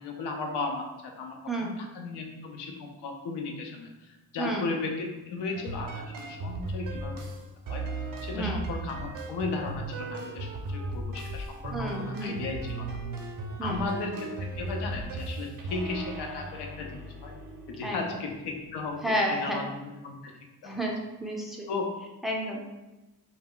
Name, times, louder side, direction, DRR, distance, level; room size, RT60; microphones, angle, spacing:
voice 1, 0.0-7.2 7.7-7.8 8.2-12.9 13.6-17.3 17.7-20.3 20.6-20.8 21.7-21.9, left 3 dB, 80° left, 2 dB, 0.6 m, -35 dB
voice 2, 4.4-4.7 8.3-8.6 11.7-12.4 13.6-13.9 17.8-18.0 19.0-19.6 20.6-21.7 22.2-22.6, right 1 dB, ahead, -2 dB, 0.4 m, -31 dB
sound 1, 5.5-18.9, right 2 dB, 55° right, 0.5 m, -37 dB
2.1 x 2.1 x 3.7 m, 1.1 s
cardioid pair, 85°, 40 cm